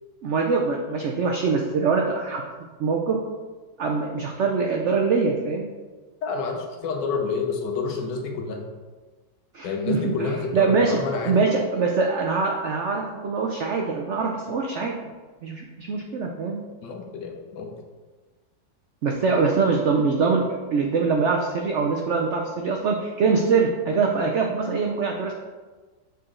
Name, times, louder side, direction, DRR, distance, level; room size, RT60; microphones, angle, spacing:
voice 1, 0.2-2.4 2.8-3.2 3.8-5.7 9.5-11.0 11.3-15.0 15.4-16.6 19.0-25.3, right 4 dB, 80° right, 1 dB, 0.6 m, -23 dB
voice 2, 6.2-8.6 9.6-11.4 16.8-17.7, left 4 dB, 80° left, 2 dB, 1.5 m, -28 dB
6.7 x 4.1 x 3.7 m, 1.3 s
omnidirectional pair, 1.9 m